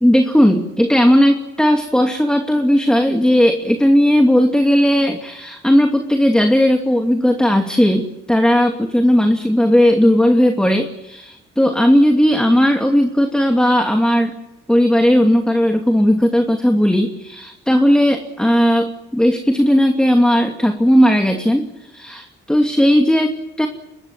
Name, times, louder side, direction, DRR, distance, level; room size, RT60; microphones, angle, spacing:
voice 1, 0.0-14.4 14.7-23.7, equal, 5° left, 4 dB, 2.7 m, -15 dB
25.5 x 22.0 x 7.5 m, 0.97 s
cardioid pair, 90°, 20 cm